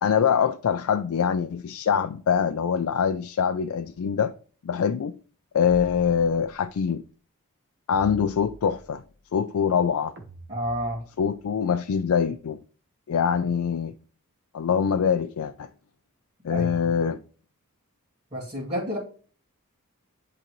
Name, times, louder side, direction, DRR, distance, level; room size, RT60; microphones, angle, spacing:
voice 1, 0.0-4.3 4.6-5.1 5.5-7.0 7.9-9.0 9.3-10.1 11.2-12.6 13.1-13.9 14.5-15.7 16.4-17.2, left 7 dB, 70° left, 0.4 m, -24 dB
sound 1, 5.6-6.7 7.9-9.2 10.2-11.4, right 1 dB, 50° right, 1.1 m, -46 dB
voice 2, 10.5-11.0 16.5-16.8 18.3-19.0, equal, 30° right, 2.3 m, -30 dB
10.5 x 3.9 x 3.1 m
head